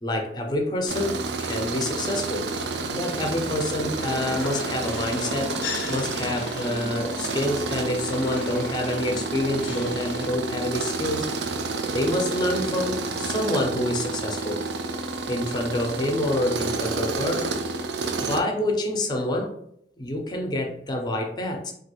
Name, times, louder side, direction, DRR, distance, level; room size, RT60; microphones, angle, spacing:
voice 1, 0.0-2.5 2.9-5.5 5.9-11.6 11.9-14.6 15.3-17.5 18.2-19.5 20.0-21.7, left 1 dB, 25° left, 2 dB, 0.4 m, -27 dB
Tools, 0.9-18.4, right 3 dB, 70° right, 0.4 m, -30 dB
sound 1, 4.0-10.3, left 4 dB, 90° left, 0.4 m, -36 dB
3.0 x 2.3 x 2.9 m, 0.71 s
head